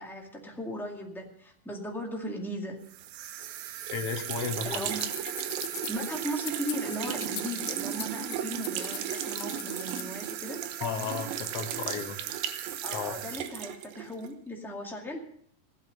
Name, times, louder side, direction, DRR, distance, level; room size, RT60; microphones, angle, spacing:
voice 1, 0.0-2.8 4.6-5.1 5.9-10.6 12.8-15.2, equal, ahead, -1 dB, 1.0 m, -37 dB
sound 1, 2.9-14.3, right 10 dB, 80° right, 2.7 m, -35 dB
voice 2, 3.9-4.8 10.8-12.2 12.9-13.2, left 6 dB, 65° left, 5 dB, 1.5 m, -33 dB
sound 2, 5.0-5.9 6.5-8.4 8.6-10.1, left 13 dB, 90° left, 2.7 m, -40 dB
16.5 x 11.0 x 5.2 m, 0.63 s
omnidirectional pair, 4.3 m